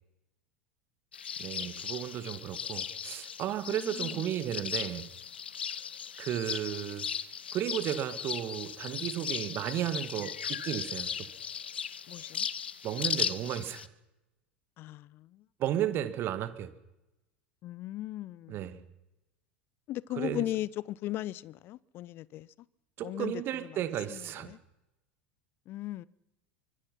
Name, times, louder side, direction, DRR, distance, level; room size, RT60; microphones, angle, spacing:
sound 1, 1.1-13.9, left 7 dB, 75° left, 0.8 m, -37 dB
voice 1, 1.4-5.1 6.2-7.1 7.5-11.3 12.8-13.9 15.6-16.7 18.5-18.8 20.1-20.4 23.0-24.5, right 11 dB, 40° right, 1.8 m, -34 dB
voice 2, 3.7-4.2 12.1-12.5 14.8-15.4 17.6-18.8 19.9-22.5 23.0-23.3 24.1-24.6 25.7-26.1, left 15 dB, 40° left, 0.7 m, -38 dB
24.5 x 22.5 x 5.7 m
figure-of-eight pair, 75°, 6 cm